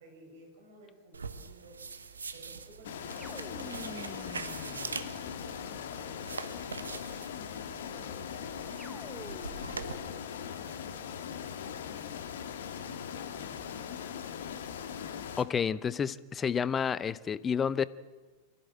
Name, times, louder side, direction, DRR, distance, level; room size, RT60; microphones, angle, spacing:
voice 1, 0.0-6.1 6.4-6.8 7.6-9.3 9.7-11.5 12.8-14.2, right 3 dB, 60° right, 1 dB, 7.2 m, -56 dB
sound 1, 1.1-9.9, right 4 dB, 75° right, 1.1 m, -43 dB
sound 2, 2.8-15.4, left 8 dB, 60° left, 1.6 m, -40 dB
sound 3, 3.2-5.7 8.8-9.8, right 2 dB, 10° right, 1.1 m, -49 dB
voice 2, 15.4-17.9, left 7 dB, 20° left, 19 dB, 0.6 m, -30 dB
24.0 x 15.0 x 7.5 m, 1.3 s
figure-of-eight pair, 90°, 0 cm